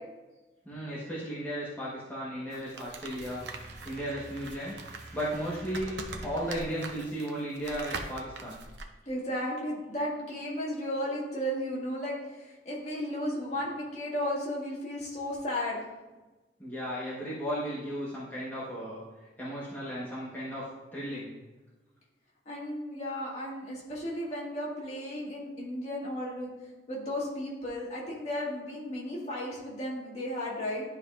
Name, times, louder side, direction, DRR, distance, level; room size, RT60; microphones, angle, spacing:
voice 1, 0.6-3.4 3.8-4.7 5.1-5.9 6.2-8.6 16.6-19.0 19.4-21.3, equal, 10° left, -8 dB, 1.2 m, -35 dB
sound 1, 2.5-8.9, right 3 dB, 75° right, 0.7 m, -42 dB
sound 2, 3.2-7.1, right 2 dB, 45° right, 1.0 m, -48 dB
voice 2, 9.1-15.9 22.5-26.5 26.9-30.8, left 1 dB, 40° left, -5 dB, 2.0 m, -34 dB
11.0 x 5.1 x 2.5 m, 1.1 s
head